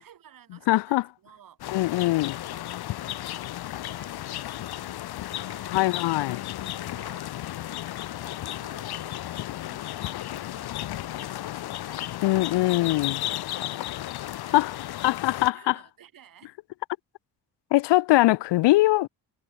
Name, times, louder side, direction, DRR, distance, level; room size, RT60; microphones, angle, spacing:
voice 1, 0.0-1.7 2.1-5.8 6.6-13.9 14.4-16.5, right 9 dB, 55° right, 3.4 m, -55 dB
voice 2, 0.7-1.0 1.7-2.3 5.7-6.4 12.2-13.2 14.5-14.7 15.0-15.7 17.7-19.1, left 18 dB, 85° left, 0.5 m, -22 dB
sound 1, 1.6-15.5, left 14 dB, 65° left, 0.9 m, -34 dB
wide cardioid pair, 170°, 41 cm